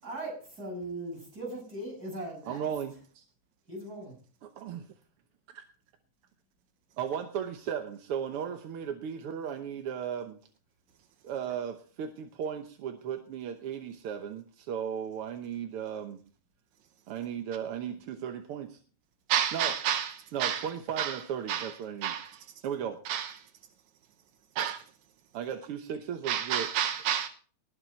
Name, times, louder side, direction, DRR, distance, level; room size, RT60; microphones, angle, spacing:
voice 1, 0.0-2.7 3.7-4.1, right 1 dB, 30° right, 7.4 m, -39 dB
voice 2, 2.5-3.2 4.4-4.9 5.5-5.6 7.0-10.4 11.2-16.2 17.1-18.8 19.5-19.7 20.3-22.1 22.6-23.0 25.3-26.7, right 8 dB, 65° right, 1.7 m, -36 dB
voice 3, 19.3-20.7 21.0-21.2 21.5-21.7 22.0-22.4 23.1-23.3 24.6-24.8 26.3-27.3, right 9 dB, 85° right, 2.2 m, -30 dB
19.5 x 7.3 x 4.4 m
omnidirectional pair, 3.3 m